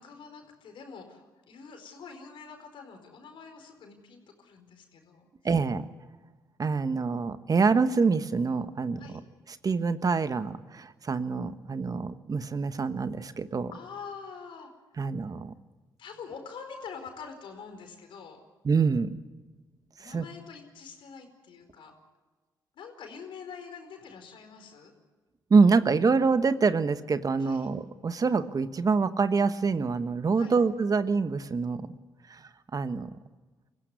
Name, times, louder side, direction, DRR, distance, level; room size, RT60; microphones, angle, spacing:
voice 1, 0.0-5.3 9.0-9.2 13.7-14.7 16.0-18.4 20.0-21.9 22.7-24.9 27.4-27.7 30.4-30.6, left 5 dB, 70° left, 5 dB, 4.6 m, -45 dB
voice 2, 5.4-5.8 6.6-9.0 9.6-13.7 15.0-15.5 18.6-19.1 20.0-20.2 25.5-31.9 32.3-32.4 32.7-33.1, right 4 dB, 45° right, 11 dB, 1.3 m, -25 dB
24.0 x 15.5 x 9.6 m, 1.3 s
hypercardioid pair, 50°, 9 cm